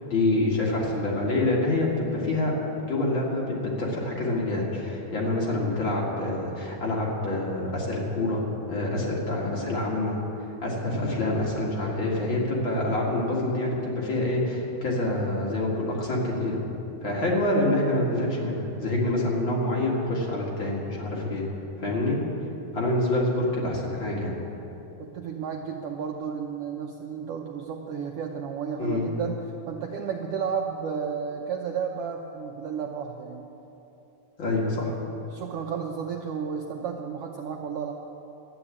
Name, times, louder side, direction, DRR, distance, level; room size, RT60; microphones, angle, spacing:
voice 1, 0.1-2.5 2.8-8.4 8.7-16.6 17.0-21.5 21.8-22.2 22.7-24.4 28.8-29.1 34.4-34.9, left 2 dB, 45° left, -4 dB, 2.6 m, -26 dB
voice 2, 25.0-33.5 35.3-37.9, right 6 dB, 75° right, 2 dB, 1.4 m, -32 dB
12.5 x 9.8 x 8.5 m, 3.0 s
omnidirectional pair, 3.4 m